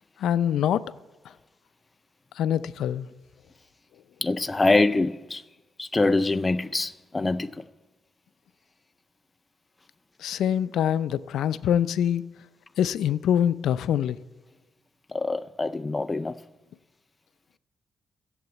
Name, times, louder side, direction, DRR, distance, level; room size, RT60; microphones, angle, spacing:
voice 1, 0.2-0.8 2.4-3.1 10.2-12.3 12.8-14.2, left 9 dB, 80° left, 0.5 m, -24 dB
voice 2, 4.2-5.4 5.8-7.6 15.1-16.3, left 2 dB, 15° left, 0.4 m, -24 dB
14.0 x 8.0 x 7.9 m
cardioid pair, 125°, 0 cm